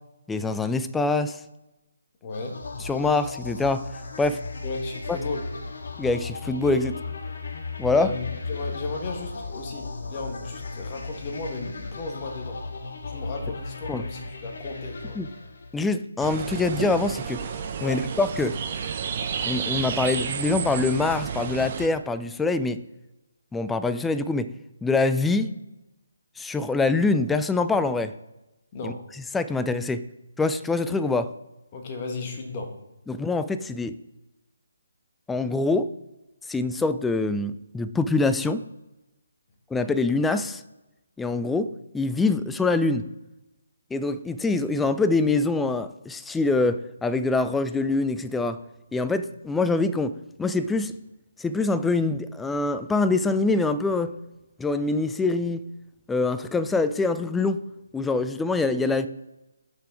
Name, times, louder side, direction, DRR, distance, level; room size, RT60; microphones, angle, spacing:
voice 1, 0.3-1.4 2.9-3.9 4.2-4.4 6.0-6.9 7.8-8.1 13.9-14.0 15.2-15.3 15.7-17.4 17.8-18.5 19.5-22.8 23.5-24.5 24.8-25.5 26.4-28.1 28.8-28.9 29.3-30.0 30.4-31.3 33.1-34.0 35.3-35.9 36.5-38.6 39.7-40.6 41.2-43.1 43.9-48.6 48.9-50.9 51.4-54.1 54.6-55.6 56.1-57.6 57.9-59.1, left 3 dB, 5° left, 11 dB, 0.3 m, -24 dB
voice 2, 2.2-2.6 4.6-5.5 7.9-12.6 13.1-15.2 17.8-18.1 28.7-29.0 31.7-32.8, left 3 dB, 25° left, 2 dB, 1.5 m, -35 dB
sound 1, 2.3-16.0, left 4 dB, 50° left, 1.0 m, -36 dB
sound 2, 16.2-21.9, right 6 dB, 35° right, 0.8 m, -31 dB
6.4 x 5.9 x 4.8 m, 1.0 s
figure-of-eight pair, 145°, 0 cm